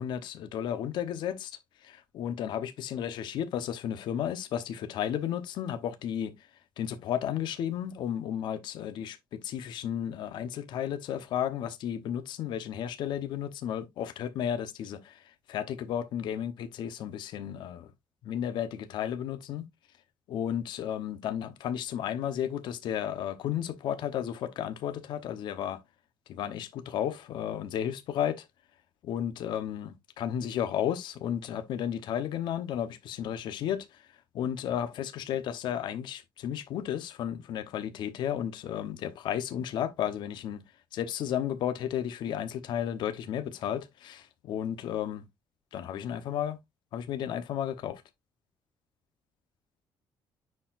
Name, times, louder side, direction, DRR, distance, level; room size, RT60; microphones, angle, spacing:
voice 1, 0.0-1.5 1.8-6.3 6.8-15.2 15.5-17.9 18.2-19.7 20.3-25.8 26.3-28.5 29.0-33.9 34.3-40.6 40.9-45.2 45.7-46.6 46.9-48.0, left 10 dB, 60° left, 0.9 m, -33 dB
9.7 x 4.6 x 2.5 m
cardioid pair, 175°, 9 cm